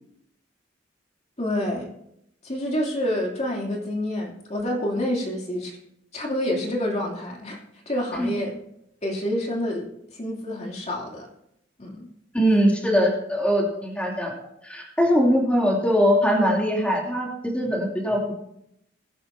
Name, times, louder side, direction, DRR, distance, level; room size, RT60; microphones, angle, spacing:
voice 1, 1.4-1.9 2.4-5.8 6.1-7.6 7.9-8.5 9.0-9.8 10.1-11.3 11.8-12.1, left 1 dB, 35° left, -1 dB, 2.9 m, -28 dB
voice 2, 12.3-14.3 14.6-18.2, equal, 5° left, -2 dB, 2.8 m, -21 dB
20.5 x 10.5 x 2.7 m, 0.77 s
head